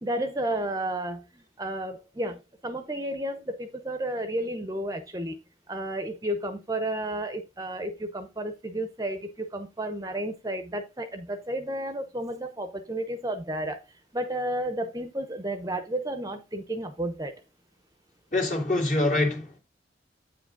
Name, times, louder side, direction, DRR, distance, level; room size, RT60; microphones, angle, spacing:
voice 1, 0.0-5.4 5.7-13.8 14.1-17.3, right 1 dB, 20° right, 0.8 m, -32 dB
voice 2, 18.3-19.6, left 2 dB, 45° left, 2.3 m, -25 dB
8.7 x 5.0 x 3.8 m
head